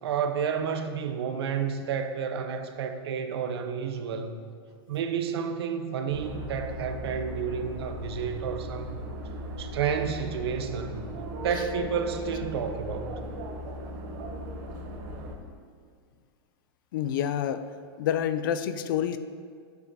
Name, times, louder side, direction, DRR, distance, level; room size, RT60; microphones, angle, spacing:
voice 1, 0.0-4.4 4.9-9.0 9.6-11.0 11.4-13.1, right 6 dB, 75° right, 7 dB, 0.7 m, -30 dB
sound 1, 6.1-15.3, equal, 40° right, 0.8 m, -38 dB
voice 2, 16.9-17.6 18.0-19.2, left 9 dB, 55° left, 11 dB, 0.4 m, -28 dB
8.1 x 7.3 x 2.8 m, 2.2 s
supercardioid pair, 165°, 13 cm